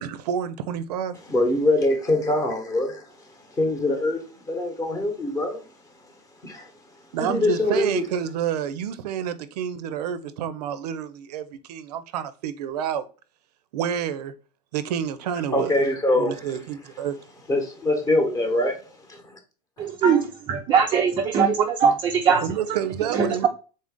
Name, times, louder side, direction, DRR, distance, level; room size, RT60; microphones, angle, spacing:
voice 1, 0.0-1.1 7.1-13.1 13.7-14.3 14.7-15.8 16.2-17.1 22.4-23.5, right 9 dB, 75° right, 0.5 m, -29 dB
voice 2, 1.2-3.1 3.5-5.6 6.4-6.7 7.2-8.1 15.5-16.6 17.5-18.8 19.1-19.2 19.8-19.9, left 1 dB, 15° left, 0.9 m, -23 dB
voice 3, 19.8-22.8 23.1-23.5, right 6 dB, 20° right, 0.4 m, -21 dB
3.9 x 2.5 x 3.6 m
supercardioid pair, 135°, 21 cm